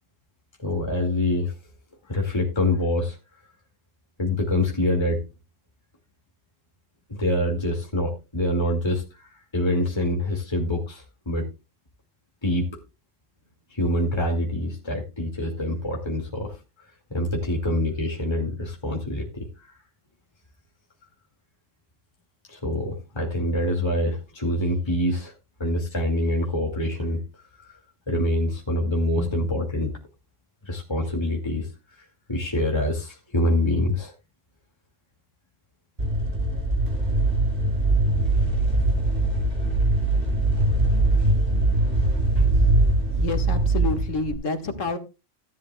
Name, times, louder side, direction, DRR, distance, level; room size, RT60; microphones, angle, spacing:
voice 1, 0.6-1.5 2.1-3.2 4.2-5.2 7.1-11.5 12.4-12.8 13.7-19.7 22.5-25.3 25.6-27.2 27.6-27.8 28.1-29.9 30.6-31.7 32.0-34.1 42.4-42.5, left 1 dB, 20° left, -1 dB, 2.4 m, -25 dB
sound 1, 36.0-44.3, right 2 dB, 45° right, 5.5 m, -22 dB
voice 2, 43.1-45.0, left 3 dB, 75° left, 6 dB, 2.2 m, -28 dB
16.5 x 11.0 x 2.3 m, 0.28 s
omnidirectional pair, 1.3 m